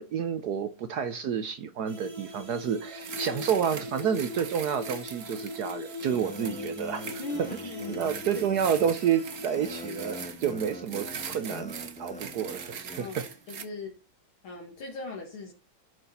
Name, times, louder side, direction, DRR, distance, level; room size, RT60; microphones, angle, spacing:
voice 1, 0.0-7.0 7.9-11.7 12.0-13.1, right 8 dB, 65° right, 1.0 m, -29 dB
sound 1, 1.9-10.3, left 3 dB, 15° right, 1.5 m, -41 dB
sound 2, 3.0-13.6, right 7 dB, 50° right, 1.4 m, -42 dB
sound 3, 6.1-13.1, equal, 5° left, 0.5 m, -43 dB
voice 2, 7.2-8.1 13.0-13.9 14.4-15.5, left 3 dB, 70° left, 2.6 m, -39 dB
11.5 x 6.4 x 4.2 m
omnidirectional pair, 2.4 m